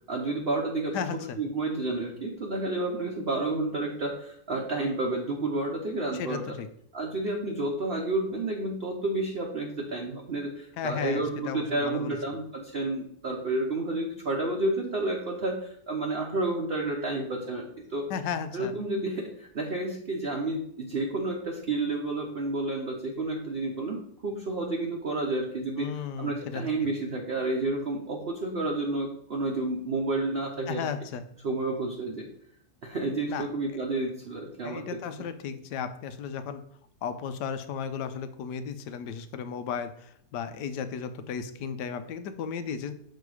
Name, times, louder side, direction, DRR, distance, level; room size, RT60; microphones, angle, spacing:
voice 1, 0.1-1.1 1.4-6.5 6.9-18.1 18.5-30.9 31.4-32.2 32.8-34.8, right 2 dB, 45° right, 0 dB, 0.9 m, -30 dB
voice 2, 0.9-1.4 6.1-6.7 10.8-12.2 18.1-18.7 25.8-26.6 30.7-31.2 33.3-33.5 34.6-36.6 37.0-43.0, left 7 dB, 80° left, 11 dB, 1.3 m, -34 dB
6.7 x 4.4 x 4.8 m, 0.67 s
omnidirectional pair, 1.8 m